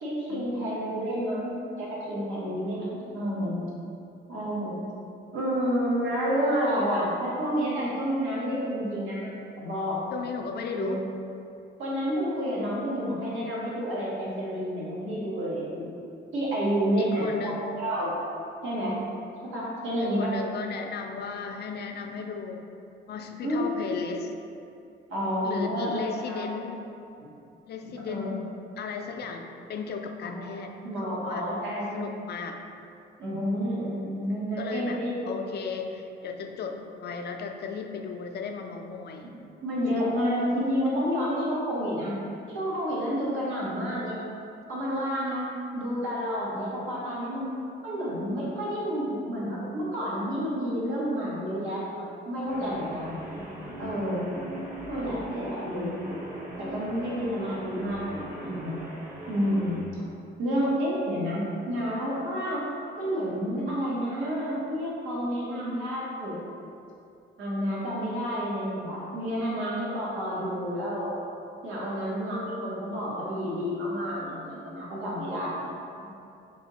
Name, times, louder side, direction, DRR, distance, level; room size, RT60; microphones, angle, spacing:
voice 1, 0.0-3.6 4.3-4.8 5.3-10.0 10.8-11.0 11.8-15.9 16.3-18.1 18.6-19.0 19.5-20.3 23.4-23.9 25.1-26.4 28.1-28.4 30.2-30.6 30.8-32.0 33.2-35.4 39.6-42.2 42.5-44.2 44.7-45.5 45.7-47.5 47.8-53.1 53.8-54.3 54.9-56.1 56.6-58.8 59.3-59.8 60.4-62.6 63.0-66.4 67.4-71.1 71.6-76.1, equal, 80° right, -6 dB, 1.1 m, -30 dB
voice 2, 10.1-11.0 17.0-17.7 20.0-22.6 23.1-24.3 25.4-26.8 27.7-28.4 28.8-31.5 31.9-32.6 34.6-39.3, left 5 dB, 55° left, 4 dB, 0.4 m, -35 dB
sound 1, 52.4-59.8, right 1 dB, 40° right, 1.1 m, -39 dB
3.3 x 2.8 x 4.1 m, 2.6 s
cardioid pair, 90°, 20 cm